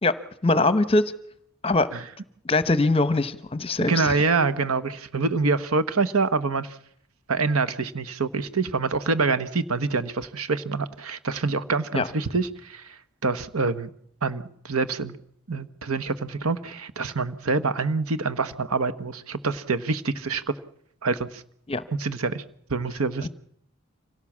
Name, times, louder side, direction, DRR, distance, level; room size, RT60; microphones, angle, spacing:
voice 1, 0.0-1.1 1.6-1.9 2.4-4.2 11.9-12.1 21.7-21.8 23.2-23.3, left 2 dB, 25° left, 14 dB, 0.9 m, -22 dB
voice 2, 3.8-6.8 7.3-12.9 13.2-13.9 14.2-15.2 15.5-20.4 21.0-21.4 22.0-22.4 22.7-23.3, right 4 dB, 90° right, 13 dB, 1.2 m, -26 dB
25.5 x 17.5 x 7.4 m, 0.71 s
head